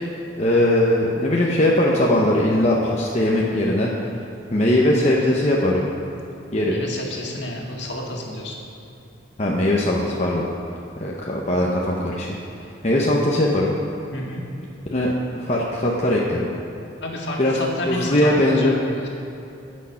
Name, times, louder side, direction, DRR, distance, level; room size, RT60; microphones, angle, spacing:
voice 1, 0.4-3.9 4.5-5.9 6.5-6.7 9.4-10.4 11.0-12.3 12.8-13.7 14.9-16.5 17.4-17.6 17.9-18.8, left 1 dB, 35° left, -3 dB, 0.9 m, -20 dB
voice 2, 6.6-8.6 14.1-14.4 17.0-19.1, left 1 dB, 60° left, -1 dB, 1.9 m, -30 dB
16.0 x 6.4 x 5.8 m, 2.8 s
head